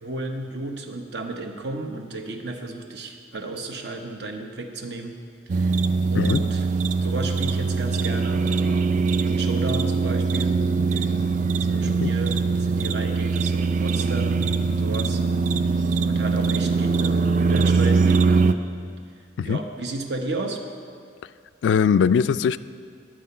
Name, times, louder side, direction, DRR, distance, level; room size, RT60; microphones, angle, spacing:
voice 1, 0.0-5.2 5.5-5.8 6.1-6.7 7.0-10.6 11.6-15.2 15.6-18.5 19.4-20.6, right 2 dB, 70° right, 4 dB, 1.0 m, -33 dB
sound 1, 5.5-18.5, right 4 dB, 45° right, 0.3 m, -22 dB
voice 2, 21.6-22.6, left 6 dB, 90° left, 14 dB, 0.3 m, -20 dB
11.5 x 7.7 x 5.6 m, 2.1 s
head